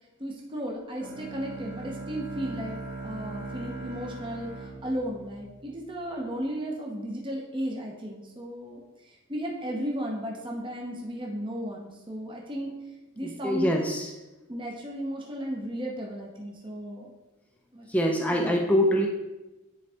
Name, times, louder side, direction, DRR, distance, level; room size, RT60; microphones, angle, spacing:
voice 1, 0.2-12.7 13.2-13.8 14.5-17.1 17.7-17.9 18.3-18.7, equal, 25° right, -1 dB, 0.8 m, -35 dB
Bowed string instrument, 1.0-6.0, right 3 dB, 45° right, 1.5 m, -40 dB
voice 2, 13.2-14.1 17.9-19.1, equal, 5° left, 0 dB, 0.6 m, -24 dB
9.6 x 4.0 x 3.4 m, 1.0 s
head